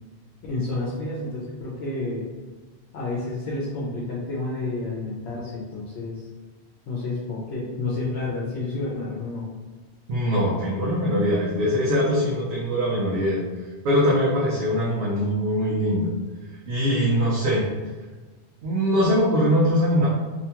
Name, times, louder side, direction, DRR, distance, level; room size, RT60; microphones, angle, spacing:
voice 1, 0.5-2.3 2.9-6.3 6.9-9.5, left 2 dB, 75° left, -7 dB, 0.9 m, -30 dB
voice 2, 10.1-13.4 13.8-16.1 16.7-17.6 18.6-20.1, equal, 75° right, -6 dB, 0.9 m, -22 dB
2.7 x 2.2 x 2.8 m, 1.3 s
omnidirectional pair, 1.1 m